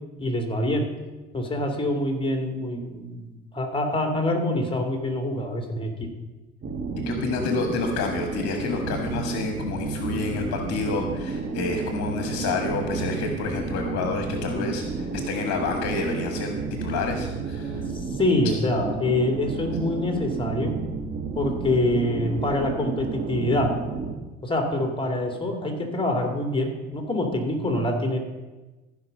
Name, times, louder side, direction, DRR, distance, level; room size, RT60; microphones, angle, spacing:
voice 1, 0.2-0.9 1.3-6.1 18.1-20.7 21.3-23.7 24.4-28.2, left 1 dB, 15° left, 3 dB, 2.4 m, -25 dB
sound 1, 6.6-24.2, right 5 dB, 30° right, 1.5 m, -31 dB
voice 2, 7.1-16.5 16.8-17.8, left 4 dB, 50° left, 4 dB, 1.4 m, -29 dB
15.0 x 5.2 x 5.4 m, 1.2 s
hypercardioid pair, 60°, 33 cm